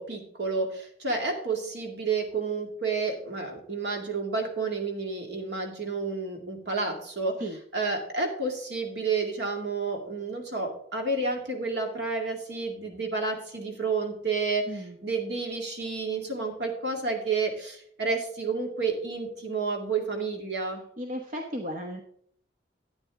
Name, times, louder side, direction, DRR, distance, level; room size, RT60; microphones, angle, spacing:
voice 1, 0.0-7.4 7.7-20.8, right 4 dB, 60° right, 3 dB, 2.3 m, -30 dB
voice 2, 14.7-15.0 21.0-22.0, equal, 45° right, 3 dB, 1.0 m, -35 dB
12.5 x 9.1 x 3.7 m, 0.63 s
head